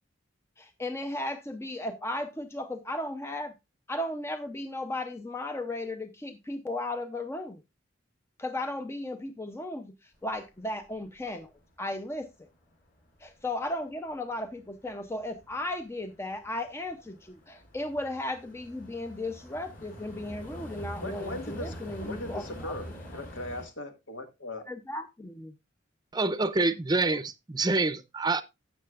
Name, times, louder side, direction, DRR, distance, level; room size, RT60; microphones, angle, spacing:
voice 1, 0.6-3.5 3.9-7.6 8.4-11.5 11.8-12.3 13.2-22.7 24.7-25.5, left 1 dB, 15° left, 0.6 m, -35 dB
sound 1, 10.1-12.4 12.7-23.7, equal, 45° left, 4.0 m, -45 dB
voice 2, 21.0-22.9 23.1-24.6, left 1 dB, 75° left, 1.8 m, -38 dB
voice 3, 26.1-28.4, right 3 dB, 20° right, 0.7 m, -26 dB
12.5 x 8.4 x 2.4 m
head